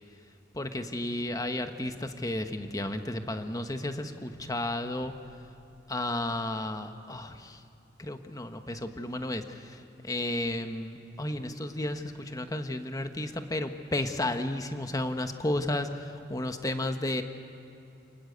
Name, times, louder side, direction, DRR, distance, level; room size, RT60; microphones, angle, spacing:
voice 1, 0.5-5.2 5.9-7.6 8.0-9.8 10.0-15.9 16.3-17.2, left 1 dB, 20° left, 7 dB, 1.3 m, -33 dB
29.5 x 19.5 x 8.1 m, 2.8 s
head